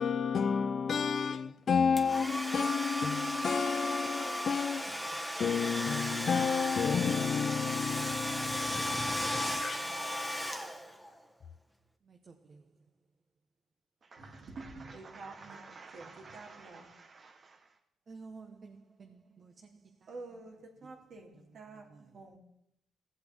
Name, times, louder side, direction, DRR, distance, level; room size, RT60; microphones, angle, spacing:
voice 1, 0.0-4.9 5.4-9.9, left 6 dB, 50° left, 0.6 m, -31 dB
Domestic sounds home sounds, 2.0-11.1, equal, 5° right, 1.2 m, -35 dB
voice 2, 12.1-12.6 14.0-17.7 18.1-20.1 20.8-20.9 21.9-22.2, right 4 dB, 45° right, 1.1 m, -53 dB
voice 3, 14.2-15.7 15.9-16.9 20.1-22.4, right 3 dB, 60° right, 2.9 m, -48 dB
16.5 x 7.9 x 3.6 m
cardioid pair, 90°, 0 cm